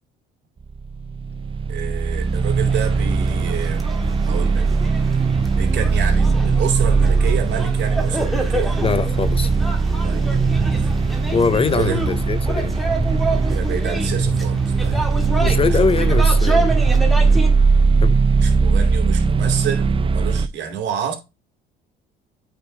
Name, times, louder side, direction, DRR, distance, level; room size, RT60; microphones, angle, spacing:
sound 1, 0.6-20.5, right 4 dB, 25° right, 0.6 m, -19 dB
voice 1, 1.7-3.9 4.2-4.6 5.6-8.8 10.0-10.3 11.7-12.0 13.5-15.0 15.4-16.1 18.3-21.1, right 8 dB, 60° right, 2.5 m, -28 dB
sound 2, 2.0-17.5, right 1 dB, ahead, 1.7 m, -26 dB
voice 2, 8.8-9.5 11.3-12.8 15.4-16.8 17.3-17.5 18.0-18.2, left 5 dB, 30° left, 0.6 m, -22 dB
8.7 x 4.4 x 3.2 m
cardioid pair, 100°, 20 cm